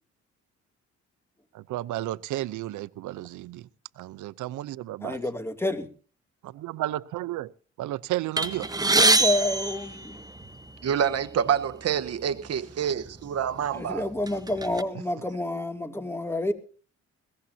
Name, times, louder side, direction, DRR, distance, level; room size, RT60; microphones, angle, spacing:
voice 1, 1.5-3.7 4.0-5.2 6.4-7.5 7.8-8.7, right 15 dB, 85° right, 0.8 m, -33 dB
voice 2, 5.0-5.9 8.9-10.2 13.7-16.5, left 1 dB, 10° left, 2.7 m, -29 dB
sound 1, 8.4-10.7 11.5-11.7 12.0-12.2 13.0-13.2 13.7-14.8, right 3 dB, 10° right, 1.2 m, -24 dB
voice 3, 10.8-14.1, right 8 dB, 55° right, 1.2 m, -27 dB
21.5 x 17.0 x 2.8 m
cardioid pair, 90°, 30 cm